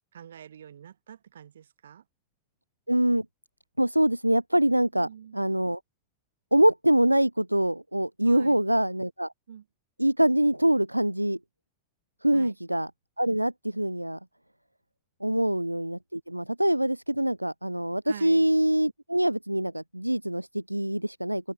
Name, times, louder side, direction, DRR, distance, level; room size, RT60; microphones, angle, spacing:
voice 1, 0.1-2.0 4.9-5.4 8.3-8.6 9.5-9.6 12.3-12.6 15.3-15.4 18.1-18.4, right 9 dB, 65° right, 4.0 m, -45 dB
voice 2, 2.9-3.3 3.8-5.8 6.5-9.3 10.0-11.4 12.2-12.9 13.2-14.2 15.2-21.5, right 1 dB, 90° right, 0.5 m, -24 dB
open air
figure-of-eight pair, 90°, 0 cm